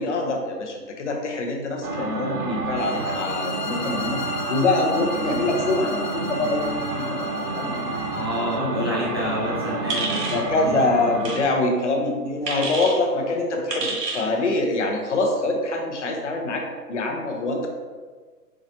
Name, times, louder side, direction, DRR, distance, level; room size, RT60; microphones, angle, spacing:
voice 1, 0.0-4.2 4.5-6.6 6.9-7.9 8.5-8.9 10.3-16.6 16.9-17.7, left 2 dB, 50° left, 2 dB, 0.8 m, -25 dB
sound 1, 1.8-11.4, right 3 dB, 65° right, 1.1 m, -29 dB
sound 2, 2.8-8.6, left 5 dB, 80° left, 0.7 m, -36 dB
voice 2, 8.1-10.8, equal, 15° right, -9 dB, 0.5 m, -29 dB
sound 3, 9.9-10.4 11.2-11.4 12.5-13.0 13.7-14.3, right 3 dB, 85° right, 1.5 m, -28 dB
4.9 x 3.8 x 2.8 m, 1.4 s
hypercardioid pair, 165°, 48 cm